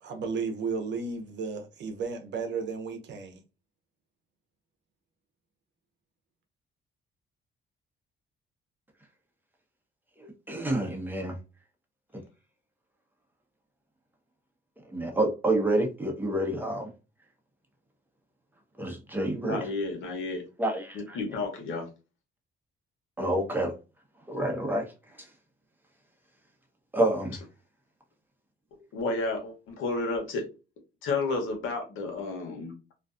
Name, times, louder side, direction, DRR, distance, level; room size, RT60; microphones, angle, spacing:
voice 1, 0.0-3.4, right 5 dB, 65° right, 0.7 m, -33 dB
voice 2, 10.5-11.3 12.1-12.2 14.9-16.9 18.8-19.6 20.6-21.2 23.2-23.7 24.3-24.8 26.9-27.4, right 1 dB, 10° right, 0.8 m, -28 dB
voice 3, 19.4-20.4 20.9-21.9 28.9-30.5 31.0-32.9, left 3 dB, 85° left, 0.9 m, -31 dB
2.5 x 2.3 x 2.4 m
cardioid pair, 90°, 20 cm